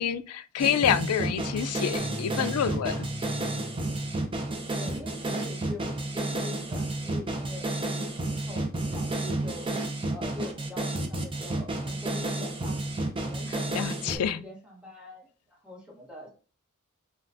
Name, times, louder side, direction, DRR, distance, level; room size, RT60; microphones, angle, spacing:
voice 1, 0.0-3.1 13.5-14.4, left 8 dB, 80° left, 0.3 m, -28 dB
sound 1, 0.6-14.2, right 2 dB, 25° right, 0.5 m, -31 dB
sound 2, 2.0-4.5, left 2 dB, 70° right, 1.3 m, -41 dB
voice 2, 4.7-9.7 10.1-12.8 13.1-16.3, left 2 dB, 5° right, 1.0 m, -44 dB
5.5 x 2.3 x 2.5 m
head